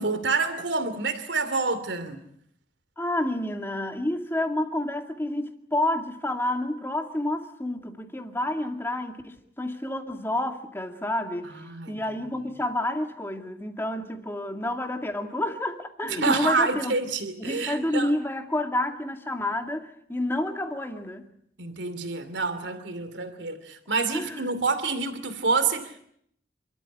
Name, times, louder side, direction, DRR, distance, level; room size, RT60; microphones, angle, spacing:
voice 1, 0.0-2.2 11.7-12.0 16.1-18.1 21.6-26.0, right 4 dB, 85° right, 2.7 m, -27 dB
voice 2, 3.0-11.5 11.9-16.9 17.4-21.3 24.1-24.4, left 1 dB, 15° left, 2.3 m, -29 dB
28.5 x 13.5 x 9.8 m
head